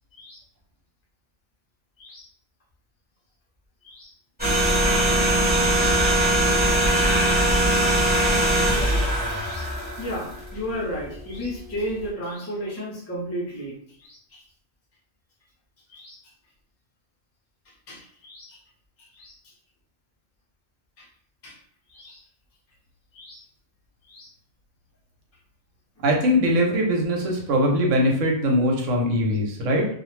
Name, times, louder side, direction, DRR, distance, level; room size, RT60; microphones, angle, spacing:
voice 1, 2.0-2.3 3.8-4.1 6.4-7.1 7.9-8.0 9.4-9.7 10.0-13.7 14.0-14.4 15.9-16.2 17.9-18.6 19.0-19.5 21.0-21.1 21.4-21.6 21.9-22.2 23.1-23.4 24.1-24.3, equal, 20° left, -4 dB, 0.4 m, -34 dB
sound 1, 4.4-10.7 11.0-11.2, right 1 dB, 10° right, 0.8 m, -21 dB
voice 2, 26.0-29.9, equal, 85° right, 0 dB, 1.0 m, -21 dB
2.3 x 2.1 x 3.0 m, 0.65 s
omnidirectional pair, 1.2 m